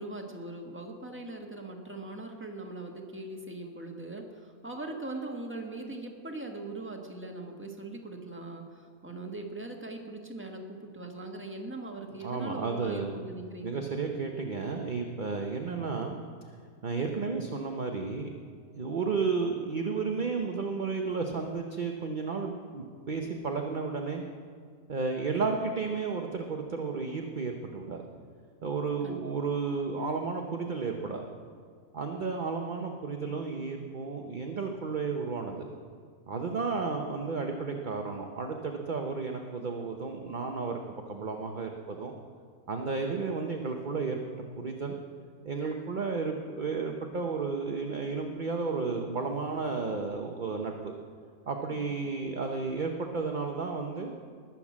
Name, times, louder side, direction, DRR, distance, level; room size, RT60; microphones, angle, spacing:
voice 1, 0.0-13.8 29.0-29.2 51.7-51.9, right 2 dB, 10° right, 1 dB, 1.5 m, -40 dB
voice 2, 12.2-13.1 13.6-16.2 16.8-18.3 18.7-24.2 24.9-28.1 28.6-31.4 31.9-35.7 36.3-40.8 41.1-42.1 42.7-44.2 44.6-45.0 45.4-50.9 51.5-54.1, right 4 dB, 35° right, 3 dB, 0.9 m, -32 dB
20.5 x 7.4 x 7.4 m, 2.1 s
omnidirectional pair, 1.6 m